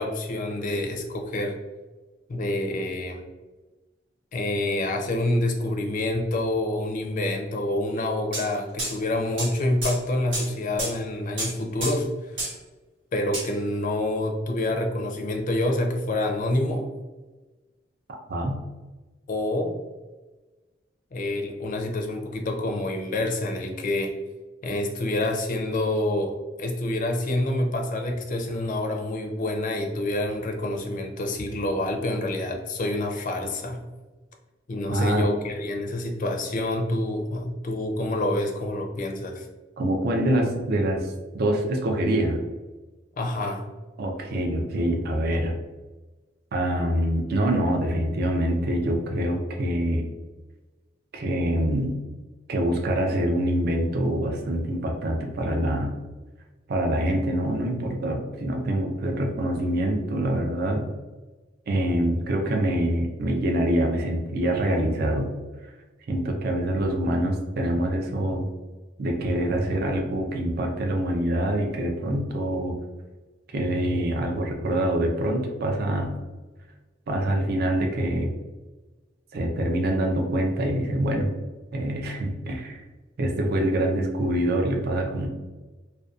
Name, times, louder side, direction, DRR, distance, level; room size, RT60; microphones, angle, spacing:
voice 1, 0.0-1.6 2.3-3.2 4.3-12.1 13.1-16.9 19.3-19.7 21.1-24.1 24.6-26.3 26.6-33.8 34.7-39.5 43.2-43.6, left 1 dB, 45° left, 3 dB, 0.4 m, -27 dB
sound 1, 8.3-8.5 8.8-8.9 9.4-9.5 9.8-10.0 10.3-10.5 10.8-10.9 11.4-11.5 11.8-12.0 12.4-12.6 13.3-13.5, right 1 dB, 80° right, 1.1 m, -29 dB
voice 2, 34.9-35.3 39.8-42.4 44.0-45.5 46.5-50.0 51.1-52.0 52.5-55.9 56.7-60.9 61.7-65.3 66.1-68.5 69.0-72.8 73.5-76.1 77.1-78.3 79.3-81.3 81.7-82.8 83.2-85.3, right 1 dB, 55° right, 2 dB, 0.4 m, -25 dB
2.6 x 2.2 x 2.3 m, 1.2 s
head